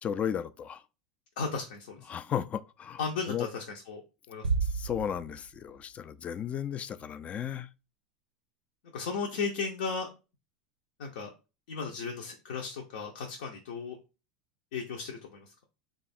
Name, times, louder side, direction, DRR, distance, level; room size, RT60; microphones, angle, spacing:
voice 1, 0.0-0.8 2.1-3.0 3.3-3.5 4.6-7.7, left 9 dB, 30° left, 0.3 m, -34 dB
voice 2, 1.4-2.1 3.0-4.0 4.3-4.5 8.9-10.1 11.0-11.3 11.7-14.0 14.7-15.5, left 5 dB, 70° left, 0.6 m, -35 dB
Bass drum, 4.4-5.9, right 5 dB, 85° right, 0.4 m, -32 dB
3.0 x 2.4 x 4.2 m
hypercardioid pair, 85°, 4 cm